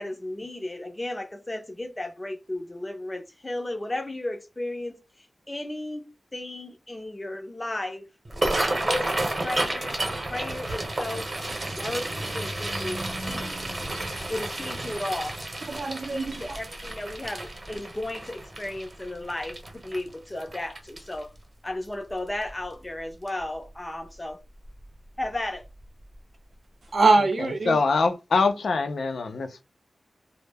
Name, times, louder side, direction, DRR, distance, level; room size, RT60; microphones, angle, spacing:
voice 1, 0.0-8.0 8.7-10.0 10.3-11.3 11.7-12.1 12.3-13.6 14.3-15.4 16.0-21.3 21.6-24.4 25.2-25.6, left 1 dB, 20° left, 0.5 m, -34 dB
sound 1, 8.2-21.4 21.8-22.1 22.4-22.9 23.3-23.4 24.7-24.8 25.2-25.3 25.8-25.9, right 1 dB, 40° right, 0.9 m, -31 dB
voice 2, 15.7-16.6 26.9-27.8, right 3 dB, 65° right, 0.6 m, -23 dB
voice 3, 27.7-29.6, left 4 dB, 90° left, 0.4 m, -24 dB
2.1 x 2.0 x 3.3 m
wide cardioid pair, 90°, 0 cm